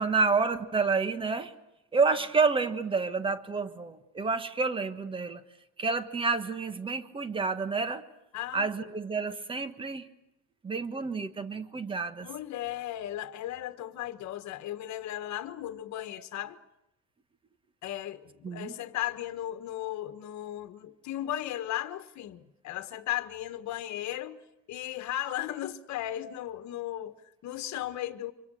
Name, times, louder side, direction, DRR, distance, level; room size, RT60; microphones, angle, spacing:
voice 1, 0.0-1.5 1.9-5.4 5.8-8.0 8.5-10.1 10.6-12.3 18.4-18.7, right 4 dB, 15° right, 1.4 m, -29 dB
voice 2, 8.3-8.9 12.2-16.6 17.8-24.4 24.7-28.3, left 13 dB, 55° left, 1.6 m, -36 dB
29.0 x 26.0 x 6.5 m
cardioid pair, 170°, 33 cm